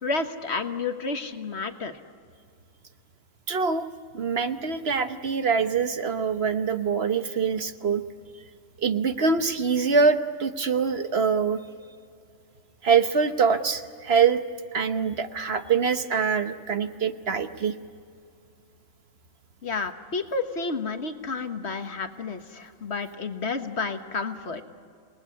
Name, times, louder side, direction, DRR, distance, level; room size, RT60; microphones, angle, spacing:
voice 1, 0.0-1.9 19.6-24.6, left 4 dB, 55° left, 8 dB, 1.6 m, -30 dB
voice 2, 3.5-3.9 4.1-8.0 8.8-11.6 12.8-14.4 14.7-17.8, right 5 dB, 55° right, 9 dB, 1.2 m, -24 dB
28.0 x 19.5 x 9.7 m, 2.4 s
omnidirectional pair, 1.3 m